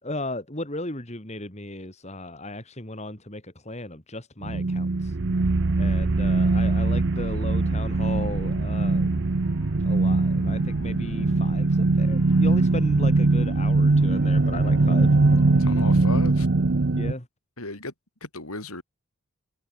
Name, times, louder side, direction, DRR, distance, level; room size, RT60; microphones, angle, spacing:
voice 1, 0.0-5.1 5.8-9.1 9.8-15.1 16.9-17.3, left 1 dB, 30° left, 3.2 m, -35 dB
sound 1, 4.4-17.1, right 3 dB, 55° right, 0.7 m, -21 dB
sound 2, 7.1-16.3, left 1 dB, 65° left, 5.6 m, -43 dB
voice 2, 15.6-16.5 17.6-17.9 18.2-18.8, left 2 dB, 80° left, 7.7 m, -35 dB
head